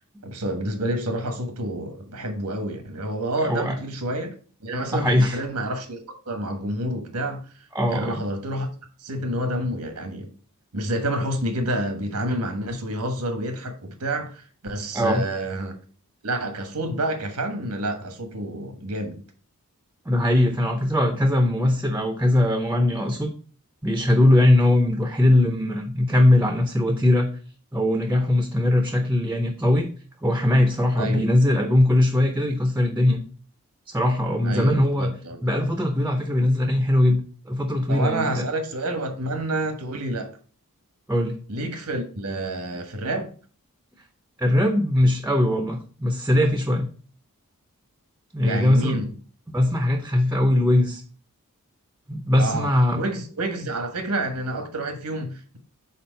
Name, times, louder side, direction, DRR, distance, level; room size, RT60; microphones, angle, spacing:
voice 1, 0.2-4.3 4.6-7.4 7.9-8.7 9.0-10.3 10.7-15.8 16.2-19.2 31.0-31.3 34.4-35.4 37.9-40.3 41.5-43.3 48.4-49.1 52.4-55.6, right 1 dB, 90° right, 1.3 m, -28 dB
voice 2, 3.4-3.8 4.9-5.4 7.7-8.2 14.9-15.2 20.1-23.3 23.8-27.3 27.7-29.9 30.2-33.2 33.9-35.1 35.4-37.2 37.5-38.5 41.1-41.4 44.4-46.9 48.3-49.0 49.5-51.0 52.1-53.0, left 1 dB, 10° right, 0.6 m, -20 dB
4.4 x 4.1 x 5.3 m
head